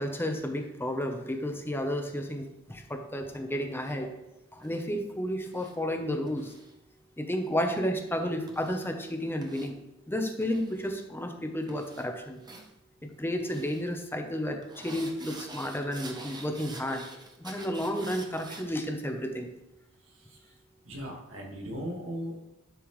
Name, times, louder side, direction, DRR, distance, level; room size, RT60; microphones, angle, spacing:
voice 1, 0.0-4.1 4.5-6.5 7.2-9.8 10.1-12.4 13.2-17.0 17.4-19.5, equal, 10° left, 5 dB, 0.8 m, -32 dB
sound 1, 3.7-4.0 4.6-4.9 5.5-5.8 6.3-6.7 7.4-7.8 8.5-8.9 9.4-9.7 10.4-11.0 11.6-12.1 12.4-12.7 13.4-13.8 14.6-18.7, right 2 dB, 20° right, 0.8 m, -47 dB
voice 2, 20.1-20.5 20.8-22.4, equal, 75° right, 0 dB, 1.9 m, -38 dB
11.5 x 5.6 x 3.2 m, 0.88 s
head